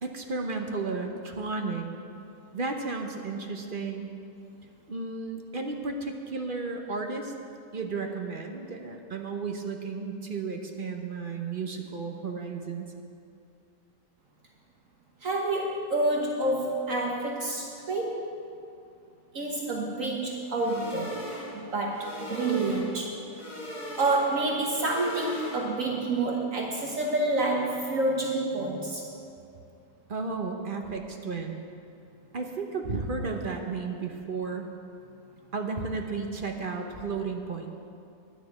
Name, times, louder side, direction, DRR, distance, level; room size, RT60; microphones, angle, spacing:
voice 1, 0.0-1.9 2.5-4.1 4.9-7.3 7.7-12.9 30.1-31.6 32.3-34.7 35.5-37.8, right 4 dB, 40° right, 3 dB, 0.9 m, -33 dB
voice 2, 15.2-18.3 19.3-21.3 21.5-23.2 24.0-29.1, right 2 dB, 60° right, -1 dB, 1.5 m, -28 dB
sound 1, 20.5-25.9, equal, 80° left, 3.1 m, -40 dB
11.0 x 6.6 x 9.2 m, 2.6 s
omnidirectional pair, 1.6 m